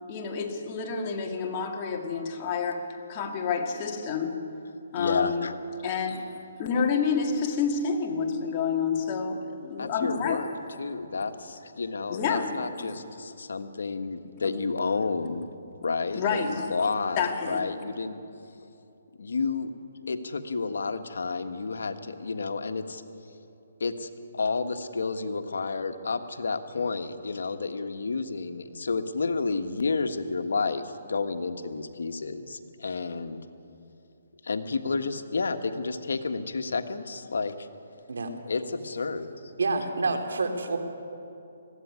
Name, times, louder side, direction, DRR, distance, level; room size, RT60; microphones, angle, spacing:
voice 1, 0.1-4.4 4.9-5.5 5.8-10.4 12.1-13.0 14.4-14.5 16.2-16.9 17.2-17.7, left 5 dB, 25° left, 3 dB, 1.9 m, -29 dB
voice 2, 5.0-5.6 9.8-10.5 10.8-15.5 15.8-18.2 19.2-19.7 20.1-23.0 23.8-33.4 34.4-37.7 38.4-39.3, left 4 dB, 80° left, 8 dB, 1.5 m, -30 dB
voice 3, 39.6-40.8, right 3 dB, 80° right, 6 dB, 3.0 m, -27 dB
20.5 x 15.5 x 9.8 m, 2.7 s
hypercardioid pair, 165°, 0 cm